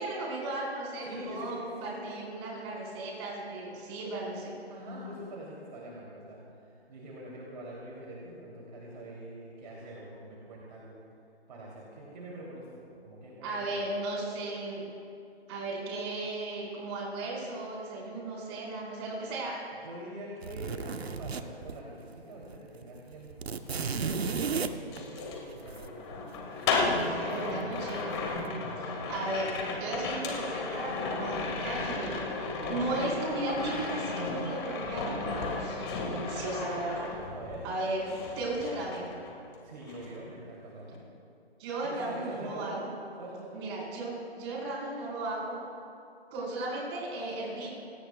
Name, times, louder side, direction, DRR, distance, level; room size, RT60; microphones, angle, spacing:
voice 1, 0.0-4.5 13.4-14.9 15.5-19.6 26.7-28.1 28.8-29.5 29.8-37.1 37.6-39.1 41.6-42.9 43.5-45.6 46.3-47.7, right 2 dB, 25° right, -4 dB, 4.6 m, -35 dB
voice 2, 1.0-2.0 4.7-11.0 11.5-13.9 19.7-23.5 24.0-26.5 26.9-27.9 28.3-29.1 32.6-32.9 37.3-37.6 39.6-41.0 41.8-42.8 43.2-43.6, right 1 dB, 45° right, -4 dB, 3.2 m, -45 dB
sound 1, 20.4-22.1 22.4-22.6 22.8-25.9 27.3-27.9 28.2-28.5, right 5 dB, 70° right, 1.0 m, -34 dB
sound 2, 23.6-37.8 38.1-39.5 39.8-40.2, left 3 dB, 25° left, 1.9 m, -34 dB
27.0 x 17.5 x 2.4 m, 2.6 s
figure-of-eight pair, 150°, 32 cm